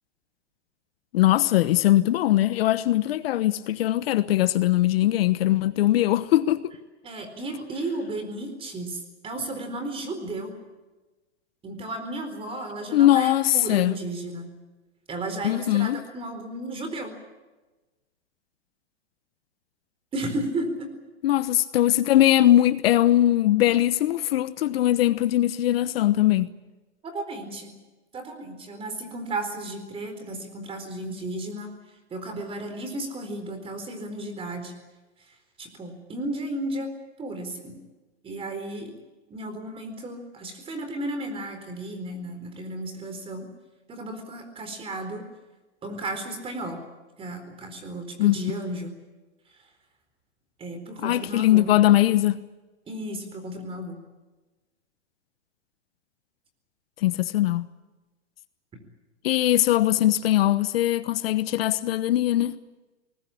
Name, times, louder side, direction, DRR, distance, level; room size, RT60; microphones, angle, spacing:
voice 1, 1.1-6.6 12.9-13.9 15.4-16.0 21.2-26.5 48.2-48.4 51.0-52.4 57.0-57.7 59.2-62.6, left 14 dB, 60° left, 1.1 m, -21 dB
voice 2, 7.0-10.5 11.6-14.5 15.1-17.1 20.1-20.9 27.0-27.7 28.1-31.7 32.1-34.7 35.6-36.9 37.2-37.7 38.2-38.9 39.3-43.5 43.9-45.2 45.8-46.8 47.2-48.9 50.6-51.7 52.9-54.0, right 1 dB, 15° right, 4.3 m, -34 dB
23.0 x 20.0 x 8.5 m
hypercardioid pair, 145°, 34 cm